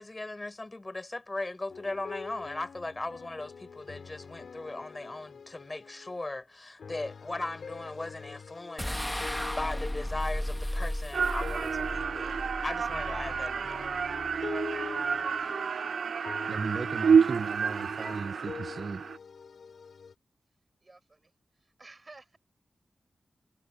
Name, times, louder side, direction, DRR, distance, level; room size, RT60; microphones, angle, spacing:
voice 1, 0.0-12.3 12.6-14.0, left 2 dB, 35° left, 7.1 m, -38 dB
sound 1, 1.7-6.2 6.8-20.1, left 5 dB, 80° left, 4.1 m, -45 dB
sound 2, 8.8-14.1, equal, 10° left, 1.7 m, -35 dB
sound 3, 11.1-19.2, right 6 dB, 80° right, 0.4 m, -29 dB
voice 2, 16.5-19.0, right 5 dB, 65° right, 1.1 m, -37 dB
voice 3, 20.8-21.3 21.8-22.4, right 3 dB, 40° right, 7.9 m, -52 dB
cardioid pair, 45°, 0 cm